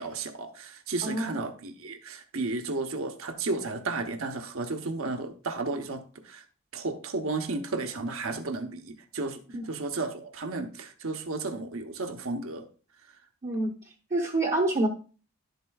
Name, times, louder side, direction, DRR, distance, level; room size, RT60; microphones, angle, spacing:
voice 1, 0.0-6.4 6.7-12.7, right 3 dB, 70° right, 0.9 m, -33 dB
voice 2, 1.0-1.4 9.5-9.7 13.4-13.7 14.1-14.9, right 2 dB, 35° right, 0.8 m, -27 dB
11.0 x 8.0 x 2.3 m
head